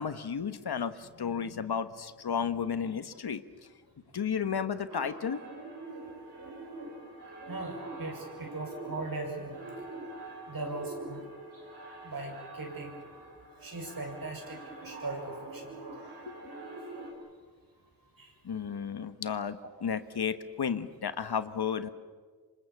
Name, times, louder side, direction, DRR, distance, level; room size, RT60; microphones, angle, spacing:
voice 1, 0.0-3.4 4.1-5.4 16.3-16.5 18.4-21.9, left 7 dB, 80° left, 12 dB, 1.2 m, -33 dB
sound 1, 4.9-17.1, right 2 dB, 80° right, 5.2 m, -45 dB
voice 2, 7.5-9.5 10.5-11.2 12.0-13.1 13.6-15.8 18.1-18.3, right 2 dB, 60° right, 2 dB, 6.8 m, -39 dB
27.0 x 25.5 x 7.2 m, 1.5 s
cardioid pair, 55°, 38 cm